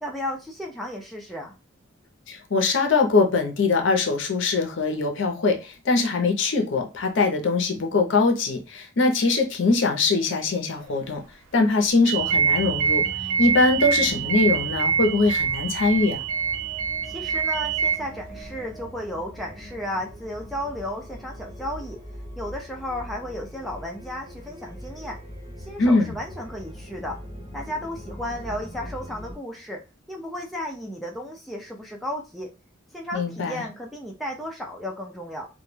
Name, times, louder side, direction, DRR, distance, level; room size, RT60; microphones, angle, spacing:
voice 1, 0.0-1.6 17.1-22.0 22.4-25.2 25.6-27.2 27.5-29.8 30.1-32.5 32.9-35.5, equal, ahead, 0.3 m, -34 dB
voice 2, 2.3-11.2 11.5-13.0 13.4-16.2 25.8-26.1 33.1-33.6, left 3 dB, 60° left, 0.5 m, -22 dB
sound 1, 12.1-18.0, right 7 dB, 80° right, 0.4 m, -25 dB
sound 2, 12.2-29.3, equal, 35° right, 1.0 m, -41 dB
2.1 x 2.1 x 3.1 m
head